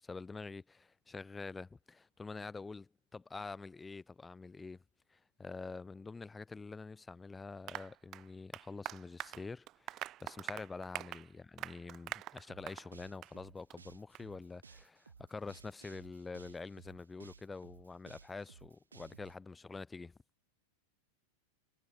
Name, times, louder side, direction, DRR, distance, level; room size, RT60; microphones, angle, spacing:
voice 1, 0.0-4.8 5.1-20.1, left 4 dB, 10° left, 1.0 m, -46 dB
Applause, 7.7-12.9 13.2-13.4 13.7-13.8 14.1-14.2, right 14 dB, 35° right, 0.6 m, -45 dB
sound 1, 12.5-19.3, right 5 dB, 75° right, 3.9 m, -58 dB
figure-of-eight pair, 90°, 0 cm